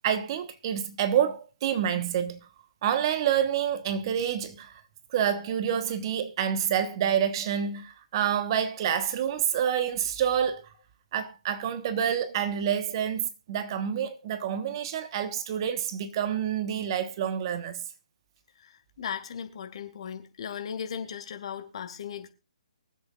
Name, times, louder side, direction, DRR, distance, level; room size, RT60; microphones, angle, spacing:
voice 1, 0.0-2.4 2.8-4.8 5.1-10.7 11.1-17.8, right 9 dB, 35° right, 1.3 m, -28 dB
voice 2, 18.6-22.3, left 7 dB, 50° left, 2.1 m, -37 dB
24.0 x 8.1 x 2.5 m
figure-of-eight pair, 135°, 4 cm